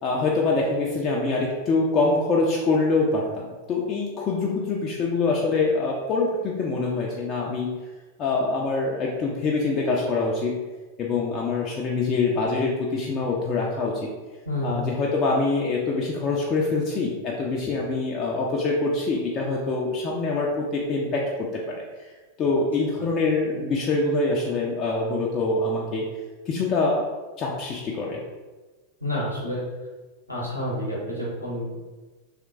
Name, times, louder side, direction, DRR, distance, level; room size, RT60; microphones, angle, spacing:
voice 1, 0.0-7.7 8.2-10.5 11.0-14.1 14.6-22.1 22.4-26.1 26.5-27.1 27.4-28.2, left 3 dB, 30° left, -3 dB, 0.4 m, -25 dB
voice 2, 14.4-14.9 22.5-22.6 22.9-23.1 29.0-29.6 30.3-31.8, left 1 dB, 85° left, -5 dB, 0.8 m, -29 dB
3.3 x 2.9 x 2.5 m, 1.3 s
figure-of-eight pair, 90°, 0 cm